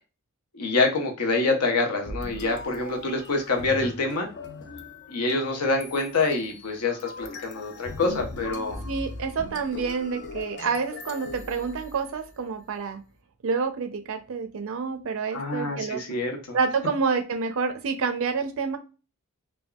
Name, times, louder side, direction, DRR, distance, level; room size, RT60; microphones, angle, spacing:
voice 1, 0.5-4.3 5.1-8.8 15.3-16.6, left 3 dB, 90° left, 3 dB, 0.8 m, -26 dB
sound 1, 2.0-12.4, left 2 dB, 50° left, 0.4 m, -40 dB
voice 2, 8.8-13.0 13.4-16.2 16.5-18.8, right 5 dB, 60° right, 7 dB, 0.4 m, -28 dB
3.4 x 2.1 x 2.2 m, 0.32 s
head